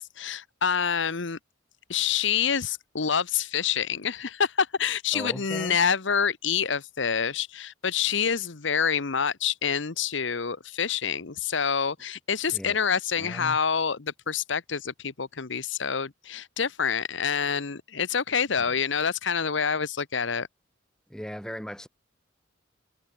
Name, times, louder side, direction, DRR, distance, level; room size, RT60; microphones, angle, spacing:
voice 1, 0.0-1.4 1.9-20.5, left 6 dB, 70° left, 1.0 m, -27 dB
voice 2, 5.1-5.8 12.5-12.8 13.2-13.6 18.6-18.8 21.1-21.9, equal, 5° left, 1.0 m, -38 dB
head